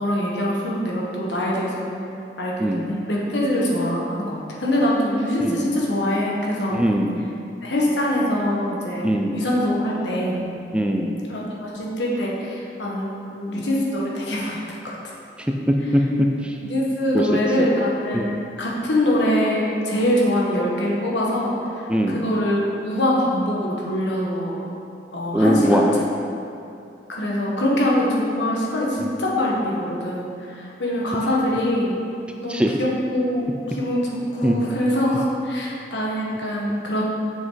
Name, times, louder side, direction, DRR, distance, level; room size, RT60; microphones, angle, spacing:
voice 1, 0.0-1.8 2.4-6.8 7.6-9.1 9.3-10.4 11.3-15.0 16.6-18.3 18.6-24.6 25.1-25.9 27.1-32.0 32.4-37.0, left 1 dB, 85° left, -4 dB, 1.4 m, -23 dB
voice 2, 6.7-7.3 9.0-9.4 10.7-11.2 13.6-13.7 15.7-16.5 17.1-17.7 18.1-18.3 21.9-22.2 25.3-25.9 29.0-29.1 32.5-32.7 34.4-34.6, equal, 5° right, 2 dB, 0.4 m, -21 dB
7.1 x 6.1 x 4.0 m, 2.6 s
head